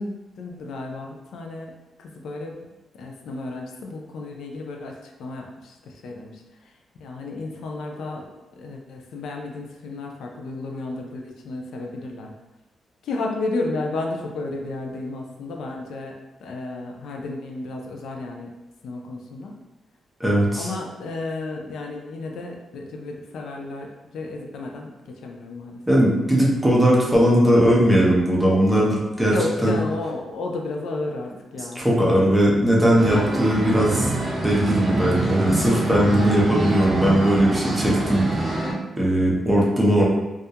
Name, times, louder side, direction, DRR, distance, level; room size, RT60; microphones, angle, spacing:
voice 1, 0.0-1.7 2.0-2.5 2.9-12.3 13.0-16.1 16.4-18.5 18.8-19.6 20.6-25.8 29.3-31.9 33.1-33.8 34.9-35.1, left 2 dB, 85° left, 1 dB, 0.3 m, -32 dB
voice 2, 20.2-20.7 25.9-29.3 29.6-29.7 31.8-34.1 34.4-38.5 39.0-40.0, right 1 dB, 10° right, -5 dB, 0.6 m, -19 dB
sound 1, 33.0-38.7, right 2 dB, 50° right, 0.5 m, -26 dB
2.3 x 2.1 x 2.7 m, 1.0 s
cardioid pair, 115°, 0 cm